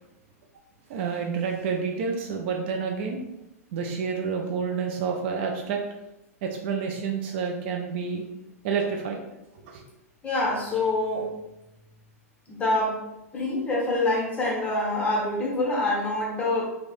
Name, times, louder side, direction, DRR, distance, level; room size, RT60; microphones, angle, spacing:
voice 1, 0.9-3.2 3.7-5.8 6.4-8.2 8.6-9.2 9.7-9.8, right 5 dB, 45° right, 2 dB, 0.4 m, -29 dB
voice 2, 10.2-11.3 12.5-13.0 13.3-16.7, left 2 dB, 15° left, -4 dB, 1.0 m, -26 dB
3.1 x 2.8 x 2.4 m, 0.92 s
figure-of-eight pair, 100°, 8 cm